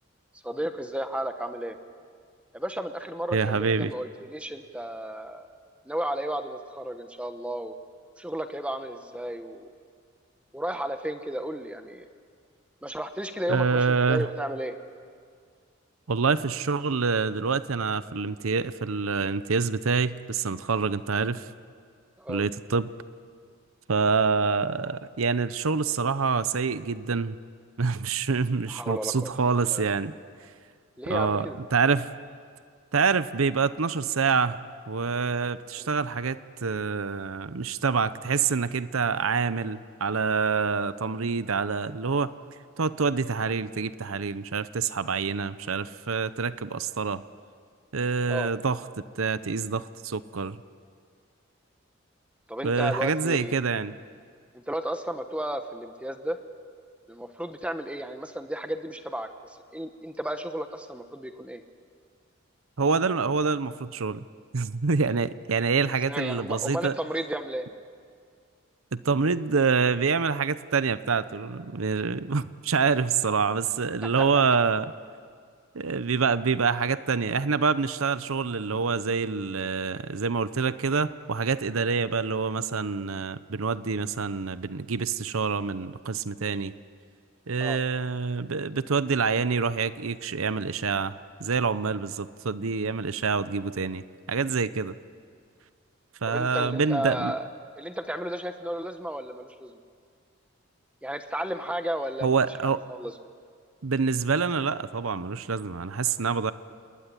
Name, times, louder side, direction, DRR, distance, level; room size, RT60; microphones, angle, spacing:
voice 1, 0.4-1.8 2.5-5.5 5.9-7.7 8.2-9.7 10.5-12.1 12.8-14.8 22.2-22.5 28.7-29.3 29.6-29.8 31.0-31.6 35.8-35.9 48.3-48.5 52.5-53.5 54.5-56.4 57.1-61.6 66.1-67.7 74.0-74.3 87.6-87.8 96.3-97.5 97.8-99.8 101.0-102.4 102.6-103.1, right 1 dB, 5° right, 7 dB, 1.0 m, -33 dB
voice 2, 3.3-3.9 13.5-14.3 16.1-21.5 22.3-22.9 23.9-27.4 27.8-30.1 31.1-31.5 31.7-32.1 32.9-34.6 34.9-42.3 42.8-47.2 47.9-48.8 49.2-50.6 52.6-53.9 62.8-64.2 64.5-67.0 68.9-74.9 75.7-86.7 87.5-94.9 96.2-97.3 102.2-102.8 103.8-106.5, right 5 dB, 80° right, 14 dB, 0.8 m, -26 dB
28.5 x 20.5 x 10.0 m, 2.1 s
head